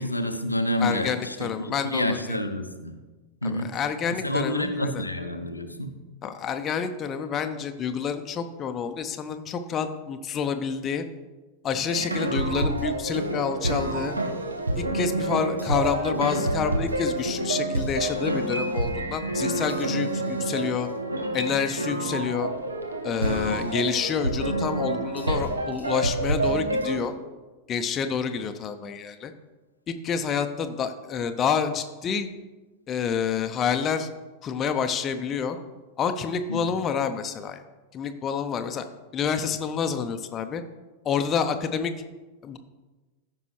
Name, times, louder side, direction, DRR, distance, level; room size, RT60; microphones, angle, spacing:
voice 1, 0.0-3.0 3.4-3.7 4.1-5.9 23.4-23.7 36.5-36.7, left 1 dB, 85° left, 6 dB, 0.6 m, -29 dB
voice 2, 0.8-2.4 3.4-5.0 6.2-11.0 11.6-14.2 14.8-20.9 21.3-22.5 23.0-27.1 27.7-29.3 29.9-32.3 32.9-34.1 34.4-35.6 36.0-37.6 37.9-38.9 39.1-40.6 41.0-41.9 42.4-42.6, left 6 dB, 25° left, 7 dB, 0.6 m, -28 dB
sound 1, 11.9-27.1, right 2 dB, 80° right, 0.8 m, -28 dB
14.0 x 5.4 x 3.2 m, 1.2 s
figure-of-eight pair, 90°, 0 cm